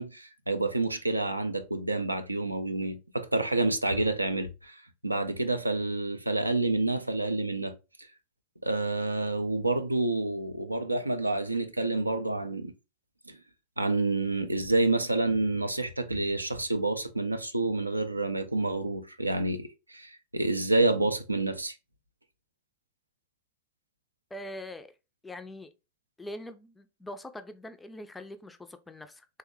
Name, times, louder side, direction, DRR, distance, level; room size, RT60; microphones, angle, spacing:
voice 1, 0.0-7.8 8.6-12.7 13.3-13.4 13.8-21.7, right 2 dB, 85° right, 0.3 m, -28 dB
voice 2, 24.3-24.9 25.2-25.7 26.2-29.3, left 1 dB, 10° left, 0.3 m, -43 dB
3.3 x 2.1 x 3.0 m
figure-of-eight pair, 90°, 0 cm